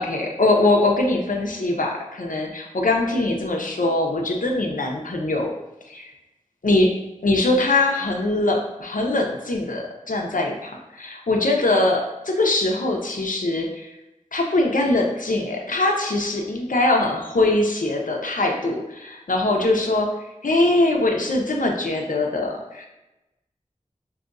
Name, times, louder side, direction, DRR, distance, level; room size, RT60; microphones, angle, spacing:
voice 1, 0.0-5.5 5.9-6.1 6.6-6.9 7.2-13.9 14.3-20.1 20.4-22.8, left 2 dB, 75° left, 1 dB, 0.7 m, -22 dB
5.0 x 2.7 x 2.5 m, 0.98 s
wide cardioid pair, 55°, 14 cm